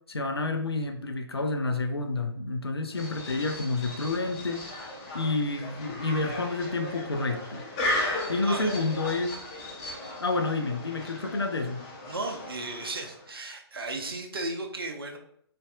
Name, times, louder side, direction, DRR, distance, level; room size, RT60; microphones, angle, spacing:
voice 1, 0.1-4.6 5.1-7.6 8.3-9.4 10.2-11.9, left 3 dB, 70° left, 6 dB, 0.5 m, -29 dB
sound 1, 2.9-13.3, left 1 dB, 15° left, 0.5 m, -36 dB
voice 2, 8.4-8.7 12.0-15.2, right 2 dB, 60° right, 2 dB, 0.7 m, -35 dB
4.0 x 3.4 x 2.3 m, 0.67 s
figure-of-eight pair, 135°, 14 cm